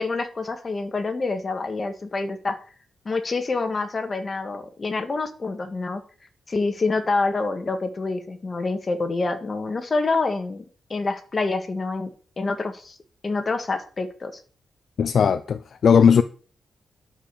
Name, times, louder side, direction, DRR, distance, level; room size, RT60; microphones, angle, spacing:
voice 1, 0.0-2.6 3.0-6.0 6.5-10.6 10.9-13.0 13.2-14.4, left 3 dB, 35° left, 1.7 m, -27 dB
voice 2, 15.0-16.2, left 6 dB, 60° left, 0.5 m, -17 dB
11.0 x 5.1 x 6.9 m
cardioid pair, 115°, 0 cm